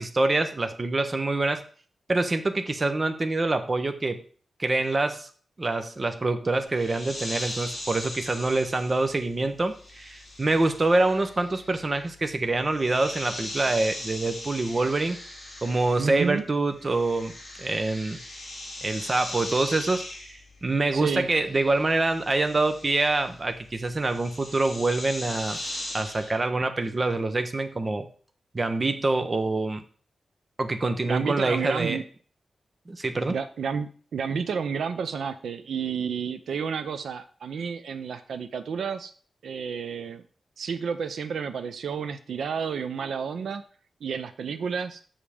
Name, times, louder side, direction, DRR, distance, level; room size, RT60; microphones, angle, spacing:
voice 1, 0.0-1.6 2.1-4.2 4.6-5.3 5.6-15.2 15.6-18.2 18.8-25.6 25.9-28.1 28.5-29.8 30.6-32.0 32.9-33.4, right 2 dB, 25° right, 8 dB, 0.7 m, -26 dB
sound 1, 6.7-16.4 16.7-26.4, left 1 dB, 15° left, 2.9 m, -40 dB
voice 2, 16.0-16.4 20.9-21.3 31.0-32.0 33.3-39.1 39.4-40.2 40.6-43.6 44.0-45.0, right 6 dB, 75° right, 11 dB, 0.6 m, -31 dB
7.2 x 5.4 x 4.9 m, 0.42 s
wide cardioid pair, 175°, 0 cm